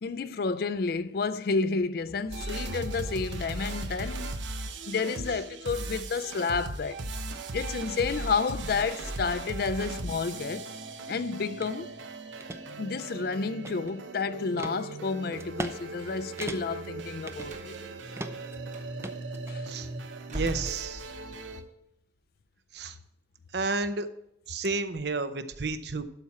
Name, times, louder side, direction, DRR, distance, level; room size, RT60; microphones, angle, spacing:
voice 1, 0.0-4.4 4.9-7.0 7.5-10.7 11.1-11.9 12.8-17.7 19.5-19.7, left 4 dB, 55° left, 0.4 m, -30 dB
sound 1, 2.3-21.6, right 2 dB, 85° right, 0.9 m, -38 dB
sound 2, 11.6-11.7 12.2-12.6 13.1-14.1 14.6-14.8 15.4-15.8 16.0-16.1 16.4-16.9 17.3-17.8 18.2-18.6 19.0-19.8, right 2 dB, 15° right, 0.5 m, -38 dB
Slam, 17.4-17.8 18.7-18.9 20.2-21.5, right 1 dB, 40° right, 1.2 m, -38 dB
voice 2, 20.3-21.1 22.7-23.0 23.5-24.1 24.5-26.0, right 3 dB, 60° right, 0.7 m, -31 dB
12.0 x 4.3 x 5.8 m
head